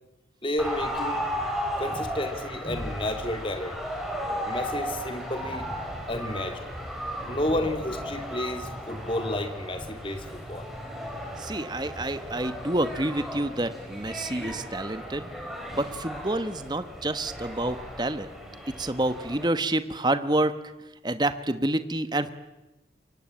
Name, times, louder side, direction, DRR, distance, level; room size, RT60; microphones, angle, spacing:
voice 1, 0.4-1.3 1.8-3.8 4.4-5.7 6.1-6.7 7.3-10.7, left 1 dB, 30° left, 7 dB, 2.6 m, -31 dB
sound 1, 0.6-19.5, equal, ahead, 5.1 m, -35 dB
voice 2, 11.4-15.3 15.7-18.3 18.8-20.5 21.0-22.3, right 1 dB, 25° right, 11 dB, 1.1 m, -28 dB
27.0 x 24.0 x 8.8 m, 1.0 s
head